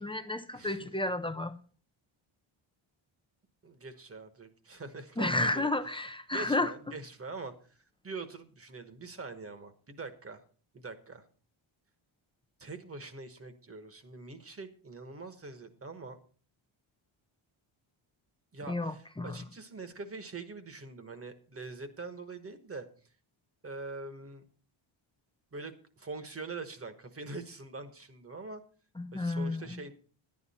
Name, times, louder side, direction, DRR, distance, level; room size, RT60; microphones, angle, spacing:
voice 1, 0.0-1.6 5.2-6.7 18.7-19.3 29.0-29.8, left 2 dB, 10° left, 0.4 m, -31 dB
voice 2, 0.5-0.9 3.6-5.7 6.3-7.8 8.0-10.4 10.7-11.3 12.6-16.2 18.5-22.9 23.6-24.5 25.5-28.6 29.1-29.9, right 3 dB, 25° right, 1.2 m, -43 dB
11.0 x 9.7 x 4.2 m
wide cardioid pair, 145°, 50 cm